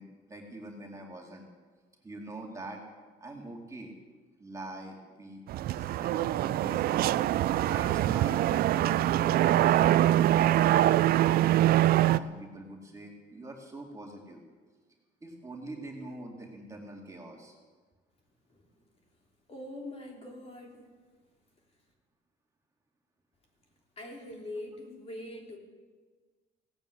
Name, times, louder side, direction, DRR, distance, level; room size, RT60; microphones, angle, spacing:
voice 1, 0.0-1.5 2.0-2.8 3.2-3.9 4.4-7.1 7.7-10.0 12.1-14.4 15.2-17.5, right 2 dB, 20° right, -1 dB, 2.4 m, -44 dB
sound 1, 5.5-12.2, right 13 dB, 65° right, 0.5 m, -24 dB
voice 2, 18.5-18.9 19.5-20.8 24.0-25.6, left 1 dB, 35° left, 0 dB, 3.4 m, -43 dB
17.0 x 9.0 x 8.2 m, 1.4 s
cardioid pair, 110°, 17 cm